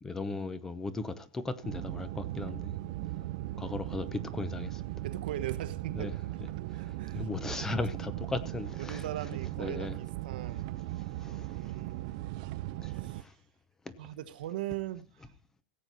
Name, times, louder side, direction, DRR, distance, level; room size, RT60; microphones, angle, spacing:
voice 1, 0.0-2.7 3.6-4.8 5.9-6.1 6.9-9.1 9.6-9.9 11.2-11.7 12.8-13.3, left 3 dB, 10° left, 0.8 m, -37 dB
sound 1, 1.6-13.2, right 16 dB, 50° right, 0.6 m, -38 dB
voice 2, 5.0-6.2 6.7-7.3 8.8-10.7 11.5-12.3 13.0-13.3 14.0-15.0, right 13 dB, 75° right, 1.1 m, -39 dB
17.0 x 7.9 x 4.1 m
supercardioid pair, 165°, 5 cm